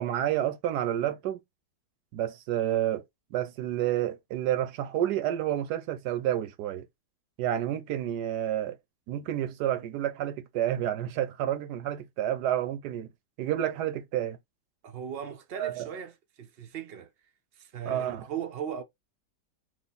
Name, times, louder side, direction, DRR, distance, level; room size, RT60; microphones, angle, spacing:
voice 1, 0.0-1.4 2.1-3.0 3.3-6.8 7.4-8.8 9.1-13.1 13.4-14.4 15.5-15.9 17.9-18.2, right 11 dB, 75° right, 1.2 m, -29 dB
voice 2, 14.8-17.1 17.6-18.8, right 8 dB, 60° right, 0.6 m, -38 dB
3.2 x 3.0 x 3.9 m
omnidirectional pair, 1.8 m